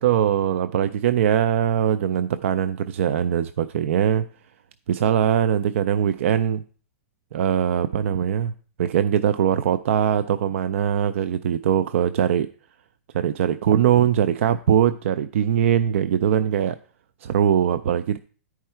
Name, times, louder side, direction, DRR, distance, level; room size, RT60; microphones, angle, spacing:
voice 1, 0.0-4.3 4.9-6.6 7.3-8.5 8.8-12.5 13.1-16.8 17.2-18.2, right 9 dB, 60° right, 12 dB, 0.4 m, -21 dB
10.5 x 4.7 x 4.4 m, 0.42 s
hypercardioid pair, 165°, 8 cm